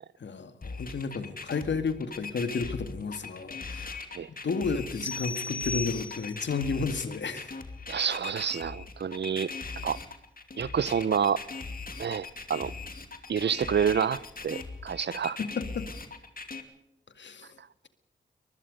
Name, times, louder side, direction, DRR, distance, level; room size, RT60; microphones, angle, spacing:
voice 1, 0.2-4.0 4.3-7.5 15.4-15.9 17.2-17.6, left 4 dB, 65° left, 2.1 m, -32 dB
sound 1, 0.6-16.6, left 4 dB, 45° left, 2.7 m, -40 dB
sound 2, 5.0-6.5, left 3 dB, 5° left, 1.6 m, -36 dB
voice 2, 7.9-9.5 9.8-10.0 10.6-11.4 12.0-12.7 13.3-15.4, right 7 dB, 60° right, 0.8 m, -28 dB
24.0 x 20.5 x 5.3 m
cardioid pair, 45°, 20 cm